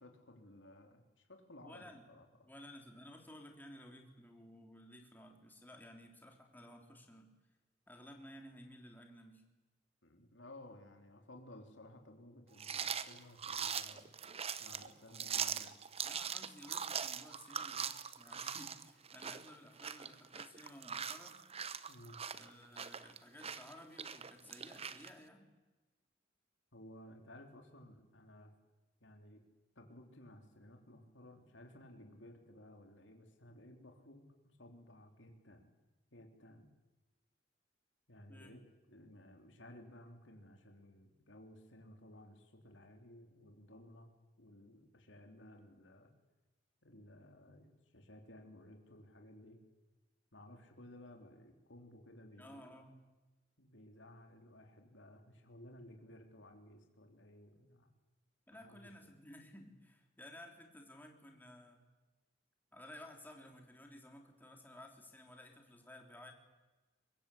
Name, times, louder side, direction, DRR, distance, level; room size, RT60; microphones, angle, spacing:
voice 1, 0.0-2.5 10.0-14.1 14.6-15.8 21.9-22.2 26.7-28.5 29.0-29.4 29.8-34.3 34.6-35.7 36.1-36.7 38.1-38.6 38.9-44.1 44.4-46.1 46.8-49.6 50.3-52.7 53.6-57.9 58.5-59.1, left 1 dB, 75° left, 4 dB, 3.5 m, -57 dB
voice 2, 1.6-2.0 2.4-7.3 7.9-9.4 16.0-21.4 22.3-25.5 38.3-38.6 52.4-53.0 58.5-61.8 62.7-66.3, left 1 dB, 10° left, 2 dB, 3.4 m, -55 dB
sound 1, 12.6-25.1, right 7 dB, 35° right, 1.0 m, -42 dB
23.5 x 22.5 x 8.5 m, 1.2 s
head